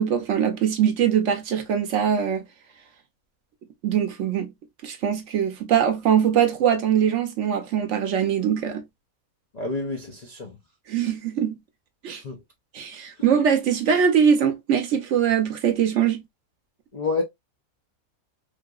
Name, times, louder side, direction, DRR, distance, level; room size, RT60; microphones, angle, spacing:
voice 1, 0.0-2.4 3.8-4.5 4.8-8.8 10.9-11.6 12.0-12.2 12.7-16.2, right 8 dB, 65° right, 0.9 m, -22 dB
voice 2, 9.5-10.6 12.1-12.4 16.9-17.2, left 3 dB, 55° left, 0.4 m, -29 dB
3.3 x 2.7 x 2.2 m
omnidirectional pair, 1.5 m